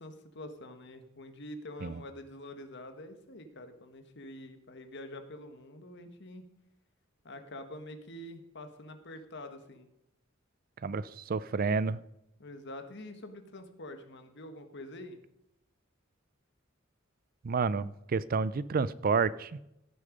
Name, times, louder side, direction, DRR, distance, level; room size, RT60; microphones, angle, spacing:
voice 1, 0.0-6.5 7.2-9.9 12.4-15.2, left 1 dB, 60° left, 8 dB, 1.4 m, -46 dB
voice 2, 10.8-12.0 17.4-19.6, right 5 dB, 45° right, 18 dB, 0.4 m, -30 dB
16.5 x 6.7 x 5.2 m, 0.83 s
head